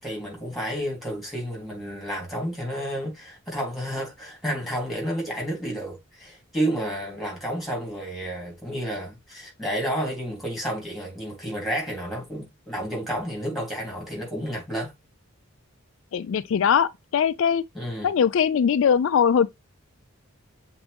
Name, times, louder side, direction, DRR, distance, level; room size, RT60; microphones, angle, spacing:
voice 1, 0.0-14.9 17.7-18.1, equal, ahead, 3.2 m, -31 dB
voice 2, 16.1-17.6 18.0-19.5, left 7 dB, 60° left, 0.3 m, -21 dB
7.2 x 4.0 x 3.4 m
head